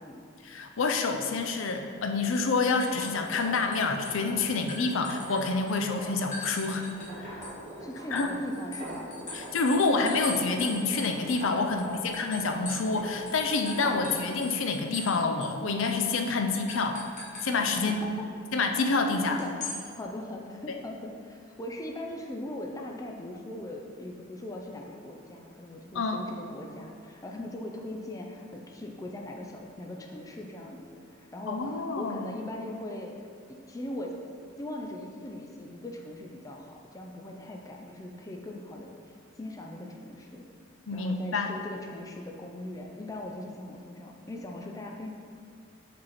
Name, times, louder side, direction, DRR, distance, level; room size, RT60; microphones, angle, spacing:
voice 1, 0.4-6.9 7.2-7.4 8.1-8.3 9.3-17.0 17.4-18.0 18.5-19.4 20.7-20.8 25.9-26.2 31.5-32.2 40.9-41.5, left 3 dB, 70° left, 5 dB, 0.5 m, -28 dB
sound 1, 2.3-3.8 4.0-5.8 6.3-7.1 7.4-13.0 13.3-13.4 13.7-15.1 15.4-15.5 15.8-16.0 16.7-17.5 19.4-19.8, left 2 dB, 35° left, 1.4 m, -41 dB
sound 2, 2.9-9.8 10.1-14.3, right 1 dB, 30° right, 1.5 m, -43 dB
voice 2, 7.8-9.1 11.6-12.1 17.8-18.3 19.1-19.5 20.0-33.1 33.5-34.2 34.6-38.9 39.4-40.5 40.9-45.1, left 1 dB, 15° left, 1 dB, 0.4 m, -40 dB
5.5 x 5.2 x 4.2 m, 2.4 s
head